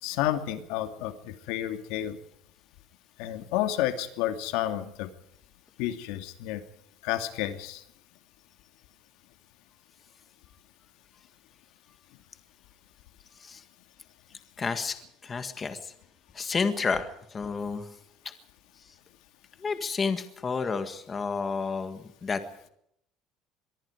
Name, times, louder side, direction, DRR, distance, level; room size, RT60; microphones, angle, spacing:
voice 1, 0.0-2.2 3.2-5.1 5.8-6.6 7.0-7.8, left 13 dB, 75° left, 8 dB, 2.5 m, -30 dB
voice 2, 14.6-15.0 15.2-15.9 16.3-17.9 19.6-22.4, left 5 dB, 20° left, 9 dB, 1.7 m, -30 dB
25.0 x 22.5 x 4.8 m, 0.72 s
cardioid pair, 180°, 0 cm